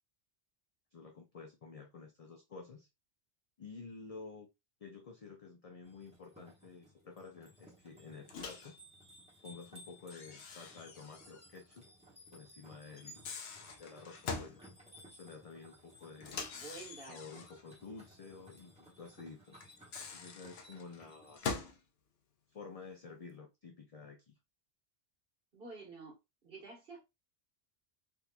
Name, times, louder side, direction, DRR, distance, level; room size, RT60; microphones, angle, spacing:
voice 1, 0.9-2.9 3.6-4.5 4.8-8.7 9.4-11.9 12.3-13.2 13.8-14.6 15.1-16.5 17.1-19.6 20.1-21.4 22.5-24.4, left 4 dB, 45° left, 0.5 m, -51 dB
sound 1, 5.8-21.4, equal, 5° right, 1.1 m, -59 dB
Microwave oven, 8.3-8.7 10.1-11.5 11.8-11.9 13.0-14.6 16.2-17.6 19.6-21.8, left 5 dB, 65° left, 0.9 m, -43 dB
voice 2, 16.5-17.5 25.5-26.2 26.4-27.1, right 3 dB, 55° right, 1.6 m, -50 dB
3.7 x 2.8 x 2.3 m
omnidirectional pair, 1.2 m